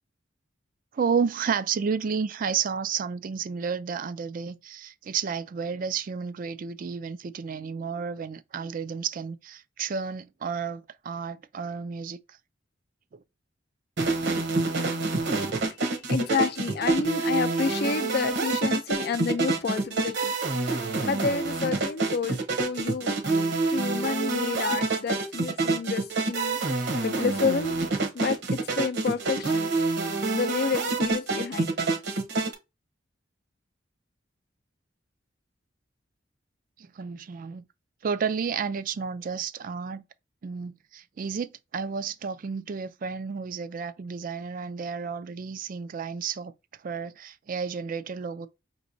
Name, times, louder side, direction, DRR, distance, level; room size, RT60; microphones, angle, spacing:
voice 1, 0.9-12.2 36.8-37.6 38.0-40.0 40.4-46.5 46.8-48.5, right 6 dB, 45° right, 0.4 m, -31 dB
sound 1, 14.0-32.5, right 3 dB, 65° right, 1.0 m, -27 dB
voice 2, 15.7-20.4 20.7-23.2 23.7-26.6 27.0-27.7 28.1-29.7 30.3-31.7, left 5 dB, 55° left, 0.5 m, -30 dB
5.3 x 3.0 x 2.6 m
head